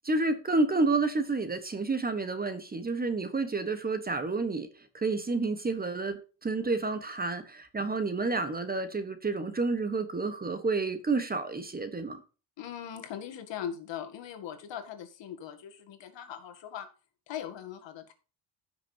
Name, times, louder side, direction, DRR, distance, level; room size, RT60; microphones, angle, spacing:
voice 1, 0.0-4.7 4.9-12.2, right 3 dB, 20° right, 1.2 m, -30 dB
voice 2, 12.6-16.9 17.3-18.1, left 9 dB, 65° left, 2.0 m, -40 dB
15.5 x 6.1 x 2.8 m
cardioid pair, 130°, 47 cm